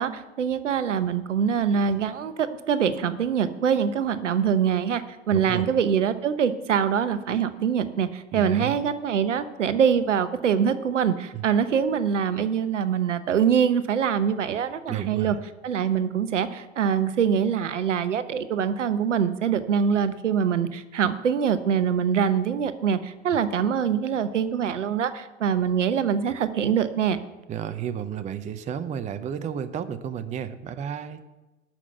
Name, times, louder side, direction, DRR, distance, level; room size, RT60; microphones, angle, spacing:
voice 1, 0.0-15.4 15.6-27.2, right 7 dB, 70° right, 13 dB, 0.9 m, -24 dB
voice 2, 5.3-5.7 8.3-8.7 11.3-11.5 14.9-15.3 27.5-31.2, right 9 dB, 20° right, 12 dB, 0.7 m, -32 dB
12.0 x 5.8 x 7.9 m, 1.1 s
figure-of-eight pair, 85°, 37 cm